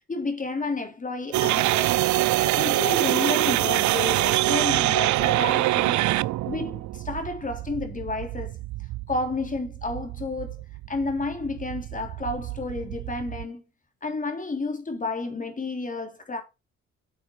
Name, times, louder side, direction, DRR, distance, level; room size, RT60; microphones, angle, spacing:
voice 1, 0.1-2.0 2.4-6.0 6.5-8.6 9.1-10.6 10.9-13.6 14.0-16.4, left 3 dB, 25° left, 3.5 m, -31 dB
sound 1, 1.3-13.4, right 17 dB, 75° right, 0.5 m, -25 dB
8.8 x 7.9 x 4.6 m
cardioid pair, 90°, 30 cm